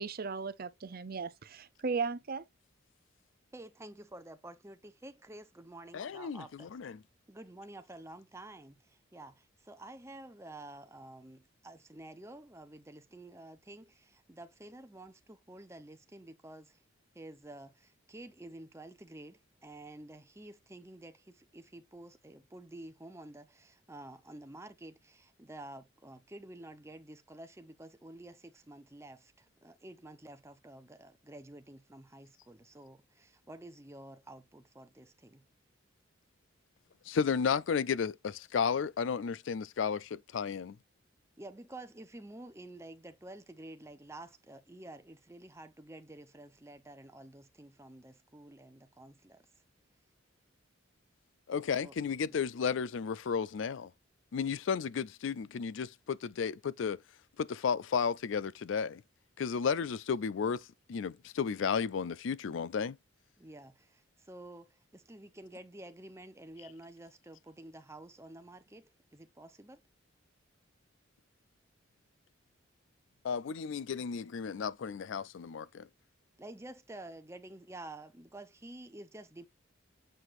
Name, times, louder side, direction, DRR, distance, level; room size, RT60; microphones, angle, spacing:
voice 1, 0.0-2.5, right 4 dB, 50° right, 0.6 m, -36 dB
voice 2, 3.5-6.7 7.3-16.8 17.1-35.4 41.4-49.4 51.8-52.0 52.2-52.4 63.4-69.8 76.4-79.5, right 1 dB, 15° right, 0.8 m, -50 dB
voice 3, 5.9-7.0 37.1-40.8 51.5-53.9 54.3-57.0 57.4-59.0 59.4-60.6 60.9-63.0 73.2-75.9, left 6 dB, 65° left, 0.4 m, -33 dB
7.7 x 4.8 x 2.6 m
head